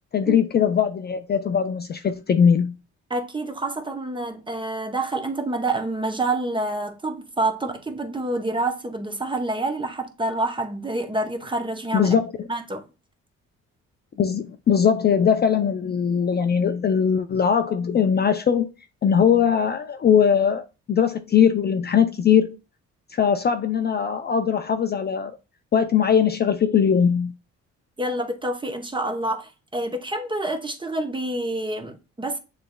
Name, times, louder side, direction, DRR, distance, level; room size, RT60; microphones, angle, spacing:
voice 1, 0.1-2.7 11.9-12.3 14.2-18.7 19.0-22.6 23.1-25.4 25.7-27.3, left 7 dB, 35° left, 0.4 m, -20 dB
voice 2, 3.1-12.2 12.5-12.8 28.0-32.4, right 2 dB, 15° right, 0.9 m, -27 dB
6.8 x 3.2 x 2.2 m
cardioid pair, 90°, 30 cm